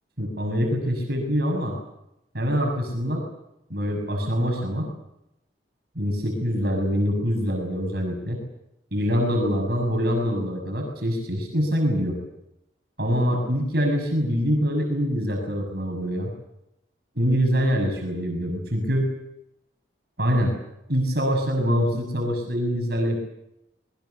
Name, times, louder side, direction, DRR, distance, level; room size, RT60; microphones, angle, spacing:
voice 1, 0.2-1.8 2.3-3.2 3.7-4.9 5.9-8.4 8.9-12.2 13.0-16.3 17.2-19.1 20.2-20.5 20.9-23.2, equal, 60° right, 2 dB, 6.3 m, -24 dB
26.5 x 21.5 x 7.0 m, 0.86 s
head